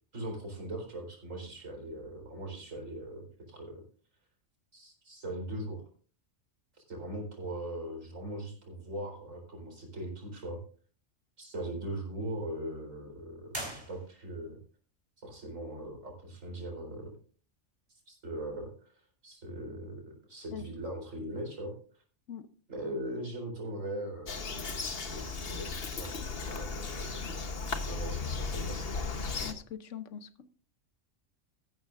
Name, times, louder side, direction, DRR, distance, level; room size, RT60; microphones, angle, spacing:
voice 1, 0.1-3.8 4.7-5.8 6.9-10.6 11.4-14.6 15.2-17.2 18.1-18.9 19.2-21.7 22.7-27.1 27.9-28.9, right 1 dB, 80° right, 4.5 m, -40 dB
sound 1, 13.5-14.5, right 1 dB, 20° right, 3.2 m, -41 dB
Bird vocalization bird call bird song, 24.3-29.5, left 4 dB, 50° left, 1.3 m, -36 dB
voice 2, 29.4-30.5, left 8 dB, 75° left, 1.1 m, -42 dB
14.5 x 12.0 x 2.5 m
omnidirectional pair, 1.3 m